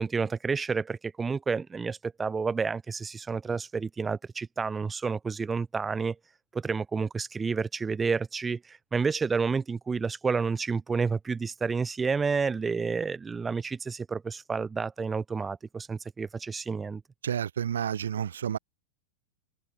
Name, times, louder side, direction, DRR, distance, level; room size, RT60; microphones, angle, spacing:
voice 1, 0.0-6.1 6.5-17.0, right 5 dB, 15° right, 3.4 m, -30 dB
voice 2, 17.2-18.6, right 9 dB, 65° right, 2.2 m, -30 dB
figure-of-eight pair, 90°, 0 cm